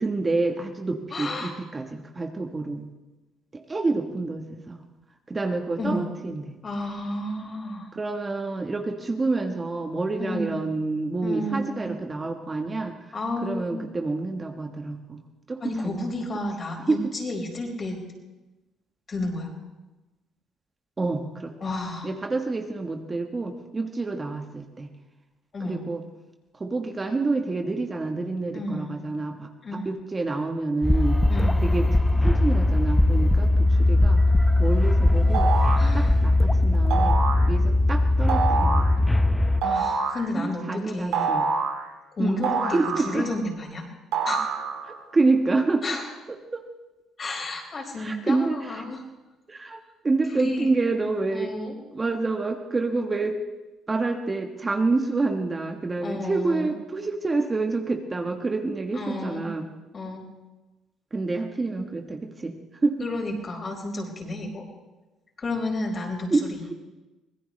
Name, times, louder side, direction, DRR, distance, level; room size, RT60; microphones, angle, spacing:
voice 1, 0.0-2.9 3.5-4.8 5.3-6.5 7.9-13.1 13.4-15.2 15.5-16.1 16.9-17.1 21.0-21.5 22.0-24.9 25.6-26.0 26.5-29.5 29.8-31.2 31.6-34.2 34.6-35.5 35.9-37.2 37.5-38.9 40.3-41.4 42.2-42.4 42.7-43.3 44.8-45.8 46.3-46.6 48.0-48.8 49.5-51.5 51.9-53.4 53.9-59.7 61.1-62.6 62.8-63.0 66.3-66.7, right 3 dB, 25° right, 4 dB, 1.3 m, -28 dB
voice 2, 1.1-1.5 5.8-6.0 6.6-7.9 10.2-10.6 11.2-11.9 13.1-13.8 15.6-18.0 19.1-19.5 21.6-22.1 25.5-25.8 28.5-28.9 29.6-29.9 31.3-31.5 35.8-36.2 39.6-41.3 42.1-43.8 44.2-44.4 45.8-46.1 47.2-49.0 50.3-50.7 51.3-51.8 56.0-56.7 58.9-59.4 59.9-60.2 63.0-64.6 65.4-66.7, left 2 dB, 40° left, 0 dB, 5.0 m, -31 dB
sound 1, 30.8-39.6, left 2 dB, 5° left, 0.7 m, -20 dB
sound 2, 35.3-35.9 36.9-37.4 38.3-38.9 39.6-40.2 41.1-41.8 42.4-43.4 44.1-44.9, right 5 dB, 80° right, 2.5 m, -26 dB
24.5 x 17.5 x 3.2 m, 1.1 s
cardioid pair, 85°, 0 cm